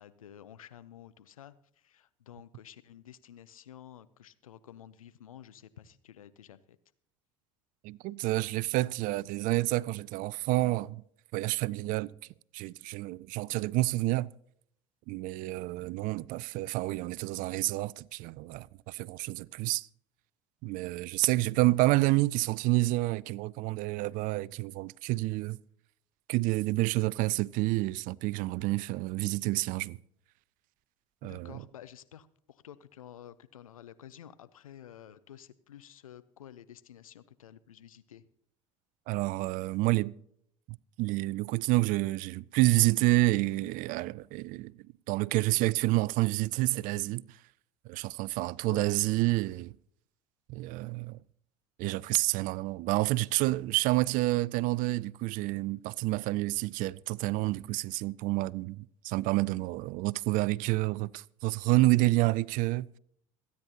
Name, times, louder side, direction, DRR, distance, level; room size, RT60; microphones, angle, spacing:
voice 1, 0.0-6.8 31.2-38.3 48.7-48.9, left 10 dB, 85° left, 0.6 m, -51 dB
voice 2, 7.8-11.0 11.3-12.1 12.5-14.3 15.1-19.9 20.6-25.6 26.3-30.0 31.2-31.6 39.1-40.1 40.7-44.7 45.1-47.4 47.9-49.8 50.5-51.2 51.8-62.9, right 20 dB, 55° right, 0.4 m, -29 dB
26.5 x 9.6 x 2.9 m
hypercardioid pair, 70°, 17 cm